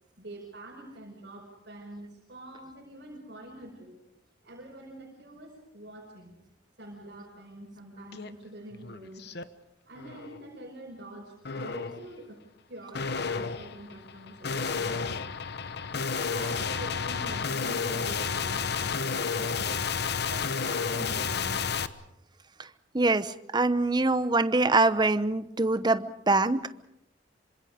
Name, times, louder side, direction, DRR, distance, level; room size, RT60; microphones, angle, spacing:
voice 1, 0.2-4.0 4.4-6.4 6.8-9.2 9.9-12.4 12.7-15.2 16.3-19.9 20.3-21.6, right 1 dB, 55° right, -3 dB, 5.8 m, -45 dB
sound 1, 8.1-8.3 8.7-9.4 9.9-10.4 11.4-12.1 12.9-21.9, left 5 dB, 60° left, 1.0 m, -31 dB
voice 2, 22.9-26.8, right 2 dB, 25° right, 13 dB, 0.8 m, -24 dB
27.0 x 25.5 x 5.1 m, 0.81 s
head